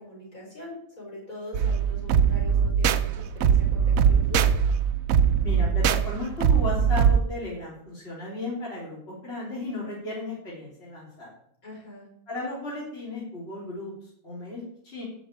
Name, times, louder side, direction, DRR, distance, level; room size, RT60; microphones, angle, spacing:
voice 1, 0.0-4.5 11.6-12.1, left 1 dB, 75° left, -3 dB, 5.2 m, -42 dB
sound 1, 1.5-7.2, right 7 dB, 75° right, 1.1 m, -21 dB
voice 2, 5.4-11.3 12.3-15.0, left 2 dB, 45° left, -6 dB, 3.7 m, -35 dB
11.5 x 5.3 x 8.7 m, 0.70 s
omnidirectional pair, 1.5 m